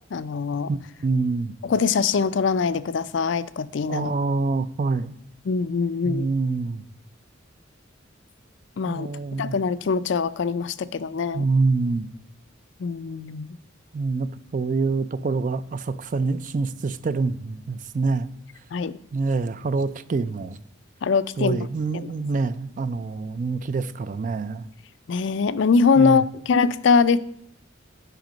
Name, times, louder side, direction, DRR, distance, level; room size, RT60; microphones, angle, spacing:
voice 1, 0.1-0.7 1.6-4.1 5.5-6.3 8.8-9.1 9.4-11.5 12.8-13.5 18.7-19.0 21.0-21.6 25.1-27.2, left 5 dB, 65° left, 15 dB, 0.4 m, -22 dB
voice 2, 0.7-1.5 3.9-5.1 6.0-6.8 8.8-9.6 11.3-12.1 13.9-18.3 19.1-20.6 21.4-24.7 26.0-26.2, right 3 dB, 40° right, 14 dB, 0.4 m, -26 dB
9.0 x 5.3 x 5.1 m, 0.71 s
head